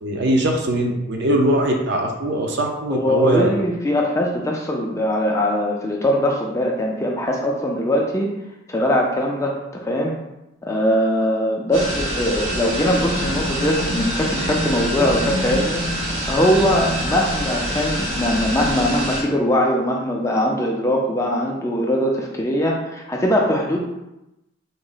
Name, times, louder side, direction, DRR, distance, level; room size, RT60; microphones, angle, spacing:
voice 1, 0.0-3.5, right 1 dB, 55° right, 2 dB, 0.5 m, -21 dB
voice 2, 2.9-8.3 8.7-10.2 10.6-15.8 16.3-23.9, equal, 15° left, 0 dB, 0.3 m, -21 dB
sound 1, 11.7-19.2, equal, 85° right, 1.3 m, -26 dB
sound 2, 13.1-17.1, equal, 75° left, 0.5 m, -30 dB
3.8 x 2.0 x 3.8 m, 0.94 s
head